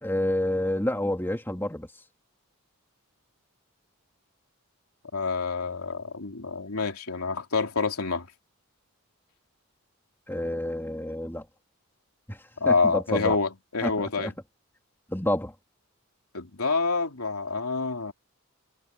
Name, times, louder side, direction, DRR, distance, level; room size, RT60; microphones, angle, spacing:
voice 1, 0.0-1.9 10.3-11.4 12.3-12.4 12.6-13.4 13.8-14.3 15.1-15.5, left 1 dB, 10° left, 3.0 m, -28 dB
voice 2, 5.1-8.3 12.6-14.3 16.3-18.1, left 4 dB, 85° left, 3.0 m, -27 dB
head